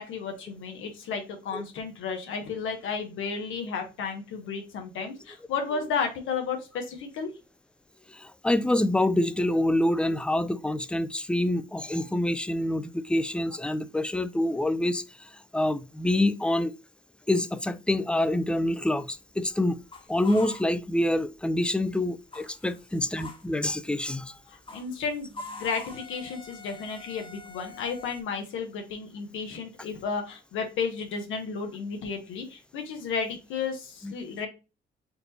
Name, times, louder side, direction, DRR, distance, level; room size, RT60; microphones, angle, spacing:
voice 1, 0.0-7.3 24.5-34.5, left 5 dB, 85° left, 1.2 m, -33 dB
voice 2, 8.1-15.0 15.5-16.7 17.3-19.8 20.1-24.3 34.0-34.1, left 1 dB, 5° left, 0.4 m, -26 dB
sound 1, 18.4-21.4 21.7-28.2, left 3 dB, 25° left, 1.0 m, -45 dB
4.4 x 2.7 x 3.9 m
cardioid pair, 90°, 20 cm